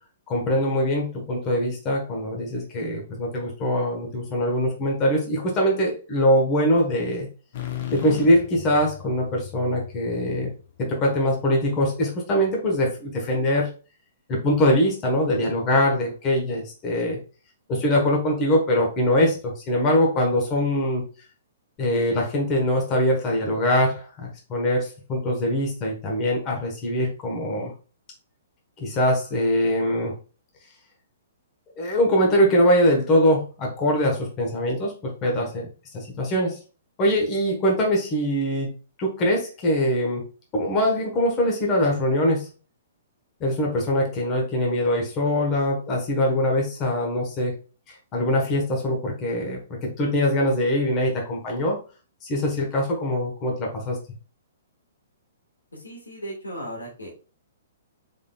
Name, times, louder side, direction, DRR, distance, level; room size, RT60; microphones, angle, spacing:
voice 1, 0.3-7.3 7.9-10.5 10.8-13.7 14.3-17.2 17.7-21.0 21.8-27.7 28.8-30.1 31.8-34.9 35.2-35.7 35.9-36.6 37.0-38.7 39.0-40.2 40.5-42.5 43.4-47.6 47.9-51.8 52.2-54.0, equal, 30° left, -1 dB, 1.3 m, -23 dB
sound 1, 7.5-11.3, left 11 dB, 50° left, 0.8 m, -37 dB
voice 2, 55.7-57.1, equal, 90° left, 0 dB, 1.5 m, -36 dB
3.6 x 3.6 x 2.3 m, 0.35 s
figure-of-eight pair, 120°, 0 cm